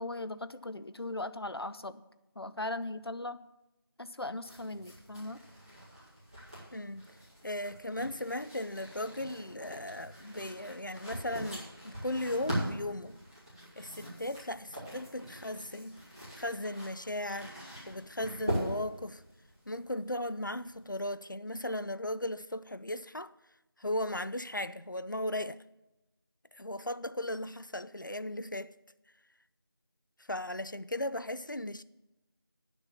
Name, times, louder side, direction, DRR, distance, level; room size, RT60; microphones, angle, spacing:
voice 1, 0.0-2.0 2.4-3.5 4.0-5.4, left 2 dB, 85° left, 0.7 m, -38 dB
sound 1, 4.4-21.0, equal, 15° left, 2.8 m, -42 dB
voice 2, 6.7-7.1 7.4-13.2 13.8-16.0 16.3-19.2 19.7-23.3 23.8-25.6 26.5-28.7 30.3-31.8, left 1 dB, 55° left, 0.4 m, -37 dB
9.9 x 6.9 x 7.1 m
figure-of-eight pair, 180°, 13 cm